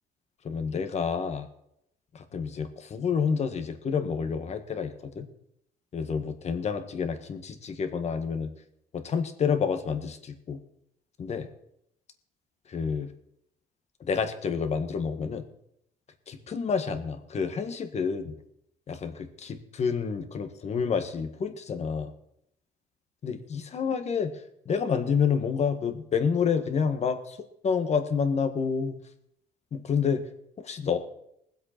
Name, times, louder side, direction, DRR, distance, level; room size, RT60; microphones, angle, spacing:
voice 1, 0.4-1.5 2.1-5.3 5.9-8.5 8.9-10.6 11.2-11.5 12.7-13.1 14.0-15.4 16.3-18.3 18.9-22.1 23.2-24.3 24.6-27.4 27.6-28.9 29.7-30.2 30.6-31.0, left 6 dB, 40° left, 8 dB, 1.5 m, -29 dB
20.5 x 7.8 x 4.4 m, 0.75 s
cardioid pair, 110°, 17 cm